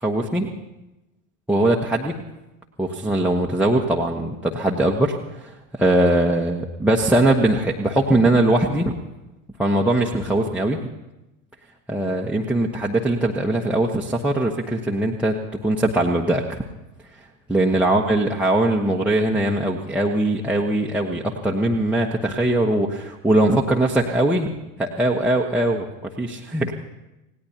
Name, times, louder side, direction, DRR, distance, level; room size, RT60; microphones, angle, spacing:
voice 1, 0.0-0.5 1.5-2.1 2.8-8.9 9.6-10.8 11.9-16.6 17.5-25.9 26.2-26.7, right 1 dB, 5° right, -3 dB, 1.1 m, -21 dB
27.0 x 18.0 x 2.9 m, 0.99 s
figure-of-eight pair, 75°, 41 cm